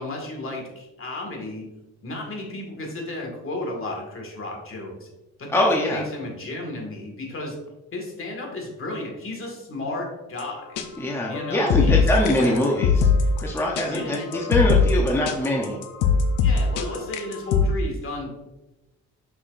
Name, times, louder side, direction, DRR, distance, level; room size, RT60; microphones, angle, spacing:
voice 1, 0.0-1.7 2.0-5.1 5.4-7.6 7.9-10.8 11.3-13.1 13.9-14.4 16.4-18.3, left 2 dB, 45° left, 0 dB, 2.0 m, -33 dB
voice 2, 5.5-6.0 11.0-13.1 13.4-15.8, left 1 dB, 10° left, -1 dB, 0.8 m, -23 dB
sound 1, 10.4-10.5 10.8-10.9 11.3-17.7, left 5 dB, 85° left, 0.7 m, -20 dB
6.2 x 5.9 x 2.6 m, 1.0 s
cardioid pair, 90°, 30 cm